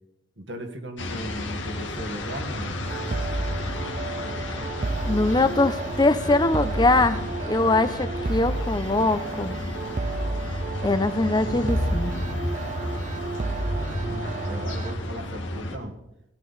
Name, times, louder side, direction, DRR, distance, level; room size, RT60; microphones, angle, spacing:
voice 1, 0.4-2.8 13.7-16.0, right 1 dB, 70° right, 4 dB, 1.7 m, -37 dB
sound 1, 1.0-15.8, left 1 dB, 80° left, 1.8 m, -32 dB
sound 2, 2.9-15.0, right 2 dB, 40° right, 0.6 m, -31 dB
voice 2, 5.1-9.6 10.8-12.1, left 2 dB, 25° left, 12 dB, 0.7 m, -22 dB
17.0 x 11.5 x 4.1 m, 0.86 s
head